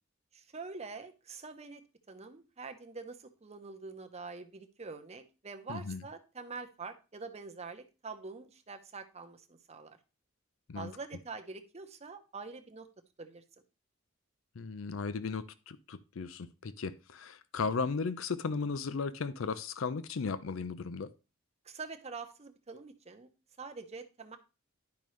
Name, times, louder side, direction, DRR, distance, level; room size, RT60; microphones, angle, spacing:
voice 1, 0.3-1.8 2.1-10.0 10.7-12.9 13.2-13.4 21.6-23.3 23.6-24.4, right 4 dB, 35° right, 0.9 m, -45 dB
voice 2, 5.7-6.0 10.7-10.9 14.6-21.1, left 4 dB, 80° left, 0.5 m, -36 dB
10.5 x 5.3 x 3.2 m
head